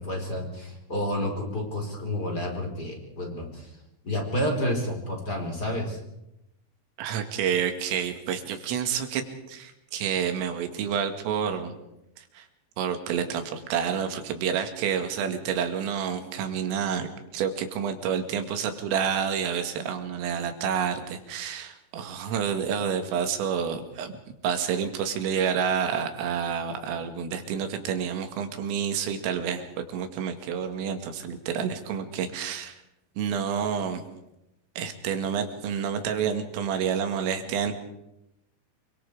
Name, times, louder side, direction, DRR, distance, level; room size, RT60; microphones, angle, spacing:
voice 1, 0.0-3.7 4.0-6.0, left 1 dB, 20° left, 2 dB, 4.7 m, -30 dB
voice 2, 7.0-9.2 9.5-11.7 12.2-12.5 12.8-24.2 24.4-32.8 33.2-34.0 34.8-37.7, right 7 dB, 85° right, 6 dB, 4.7 m, -29 dB
27.5 x 24.0 x 5.0 m, 0.88 s
omnidirectional pair, 5.7 m